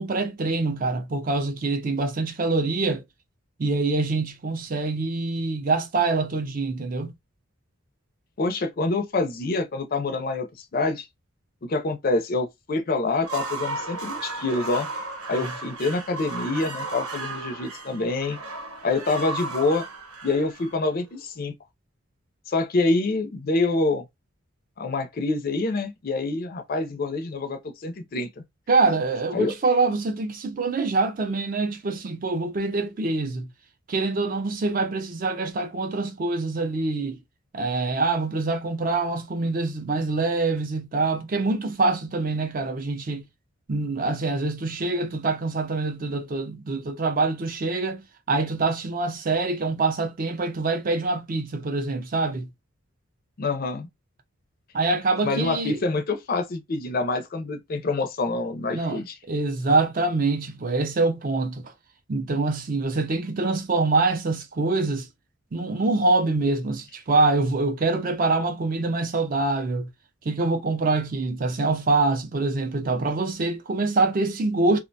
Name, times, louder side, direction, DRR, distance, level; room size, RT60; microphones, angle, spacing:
voice 1, 0.0-3.0 3.6-7.1 28.7-33.5 33.9-37.2 37.5-43.2 43.7-48.0 48.3-52.5 54.7-55.8 58.7-59.0 59.3-61.7 62.1-65.1 65.5-69.9 70.3-74.8, right 3 dB, 40° right, 0.4 m, -25 dB
voice 2, 8.4-11.1 11.7-14.9 15.3-18.4 18.8-19.8 20.2-21.5 22.5-24.0 24.8-28.4 29.3-29.5 53.4-53.9 55.2-59.1, left 3 dB, 45° left, 0.4 m, -26 dB
sound 1, 13.1-21.2, right 3 dB, 90° right, 0.9 m, -35 dB
2.5 x 2.1 x 2.6 m
head